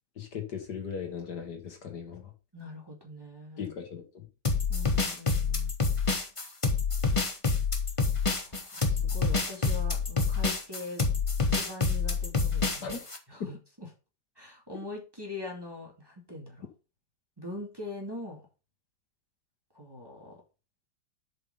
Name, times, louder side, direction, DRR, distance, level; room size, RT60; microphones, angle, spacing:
voice 1, 0.2-2.3 3.6-4.0 12.8-13.0 13.4-13.5, left 6 dB, 65° left, 5 dB, 2.1 m, -37 dB
voice 2, 2.5-3.7 4.7-5.7 8.3-11.1 11.5-13.0 13.3-13.9 14.4-16.7 17.4-18.4 19.7-20.4, left 2 dB, 15° right, -2 dB, 2.4 m, -42 dB
sound 1, 4.4-13.2, left 4 dB, 20° left, 1.0 m, -27 dB
7.8 x 5.4 x 5.5 m, 0.32 s
omnidirectional pair, 1.9 m